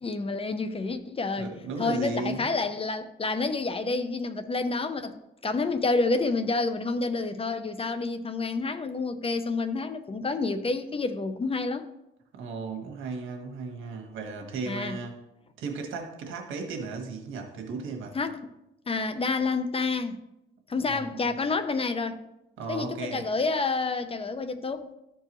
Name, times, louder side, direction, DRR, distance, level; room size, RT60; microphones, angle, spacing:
voice 1, 0.0-5.2 5.4-11.9 14.7-15.0 18.1-18.4 18.9-20.2 20.7-22.2 22.7-24.9, left 3 dB, 30° left, 0.7 m, -29 dB
voice 2, 1.4-2.5 12.3-15.2 15.6-18.2 20.9-21.3 22.6-23.3, right 4 dB, 85° right, 1.5 m, -35 dB
13.0 x 4.6 x 3.1 m
cardioid pair, 90°, 20 cm